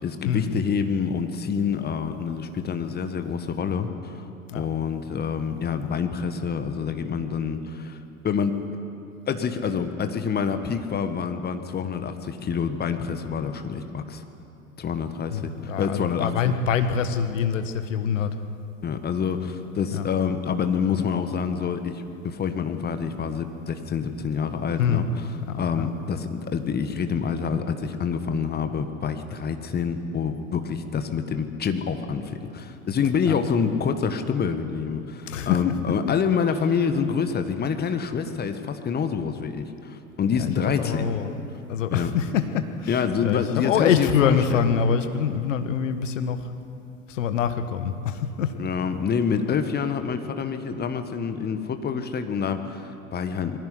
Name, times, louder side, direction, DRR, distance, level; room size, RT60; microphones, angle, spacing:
voice 1, 0.0-4.3 4.5-8.0 8.2-8.6 9.3-14.2 14.8-16.5 18.8-25.1 25.6-41.1 41.9-42.1 42.9-44.9 48.6-53.7, left 6 dB, 25° left, 8 dB, 1.5 m, -27 dB
voice 2, 15.3-18.3 19.9-20.1 24.8-25.1 25.5-25.9 33.2-33.4 35.3-35.7 40.3-41.3 41.7-46.5 47.1-48.5, left 7 dB, 60° left, 9 dB, 1.5 m, -25 dB
21.5 x 17.0 x 9.7 m, 2.8 s
figure-of-eight pair, 80°, 42 cm